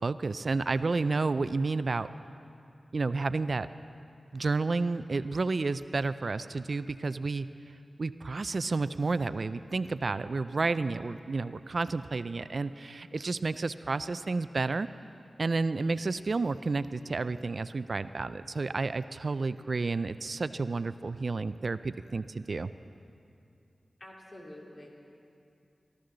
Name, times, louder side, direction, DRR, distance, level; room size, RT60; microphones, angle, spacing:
voice 1, 0.0-2.1 2.9-3.7 4.3-7.5 8.0-14.9 15.4-22.7, right 3 dB, 60° right, 13 dB, 0.3 m, -31 dB
voice 2, 24.0-24.9, left 1 dB, 45° left, -3 dB, 2.7 m, -47 dB
19.5 x 12.5 x 3.9 m, 2.5 s
cardioid pair, 60°, 0 cm